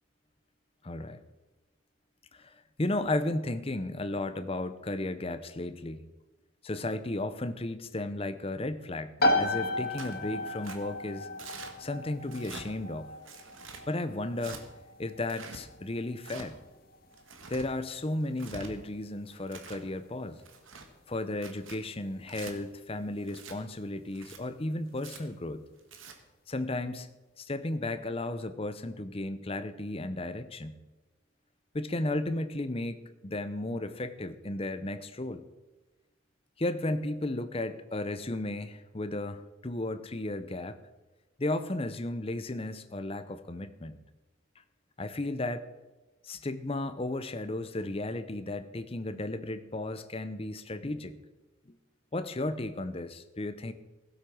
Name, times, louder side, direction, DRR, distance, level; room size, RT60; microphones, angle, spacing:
voice 1, 0.8-1.2 2.3-2.5 2.8-6.1 6.6-11.3 11.8-13.2 13.9-14.6 15.0-16.6 17.5-20.4 21.1-25.6 26.5-27.1 27.4-30.8 31.7-35.4 36.6-40.8 41.4-44.0 45.0-45.7 46.2-51.2 52.1-53.7, left 2 dB, 30° left, 11 dB, 0.7 m, -34 dB
sound 1, 9.2-23.7, left 1 dB, 45° left, 1.7 m, -36 dB
Tearing, 10.0-10.2 10.6-10.8 11.4-11.7 12.3-12.7 13.2-13.8 14.4-14.6 15.2-15.6 16.2-16.5 17.1-17.7 18.3-18.7 19.3-19.8 20.4-20.9 21.3-21.8 22.3-22.5 23.3-23.6 24.1-24.4 25.0-25.2 25.8-26.1, right 5 dB, 70° right, 1.6 m, -46 dB
15.5 x 8.2 x 6.2 m, 1.1 s
head